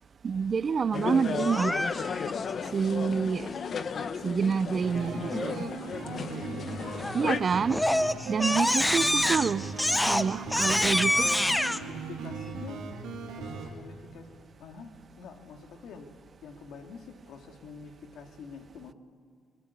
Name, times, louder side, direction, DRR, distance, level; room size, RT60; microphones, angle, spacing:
voice 1, 0.2-1.8 2.7-3.5 4.2-5.7 7.1-7.8 8.3-9.7 10.0-11.3, right 6 dB, 45° right, 0.6 m, -27 dB
sound 1, 0.9-7.4, left 6 dB, 50° left, 1.0 m, -34 dB
Crying sobbing, 1.4-2.3 7.0-7.3 7.7-11.8, left 1 dB, 10° left, 0.8 m, -26 dB
sound 2, 4.8-13.7, right 5 dB, 85° right, 3.3 m, -39 dB
voice 2, 6.3-7.0 10.5-10.8 11.2-12.8 13.3-14.3 14.6-16.1 16.4-18.9, left 5 dB, 75° left, 2.4 m, -46 dB
22.0 x 20.0 x 8.5 m
cardioid pair, 90°, 0 cm